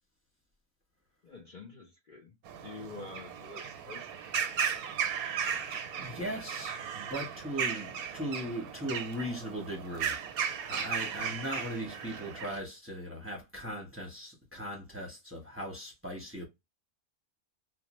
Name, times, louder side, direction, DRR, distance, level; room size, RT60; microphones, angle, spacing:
voice 1, 1.2-4.1 11.9-12.0, left 3 dB, 75° left, 0.4 m, -48 dB
sound 1, 2.5-12.6, right 7 dB, 85° right, 1.1 m, -36 dB
voice 2, 5.5-10.2 10.7-16.4, equal, 15° right, 0.6 m, -39 dB
2.6 x 2.0 x 2.9 m
omnidirectional pair, 1.5 m